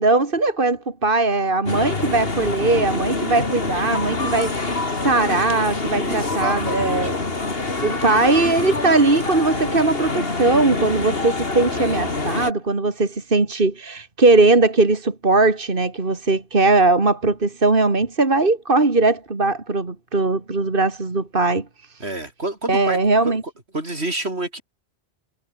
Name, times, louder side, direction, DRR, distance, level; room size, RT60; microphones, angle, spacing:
voice 1, 0.0-7.1 7.8-21.6 22.7-23.4, right 3 dB, 55° right, 2.7 m, -19 dB
sound 1, 1.7-12.5, left 3 dB, 65° left, 3.0 m, -25 dB
voice 2, 2.6-3.1 6.0-7.1 8.1-8.4 22.0-23.3 23.7-24.6, right 2 dB, 75° right, 5.1 m, -29 dB
omnidirectional pair, 1.1 m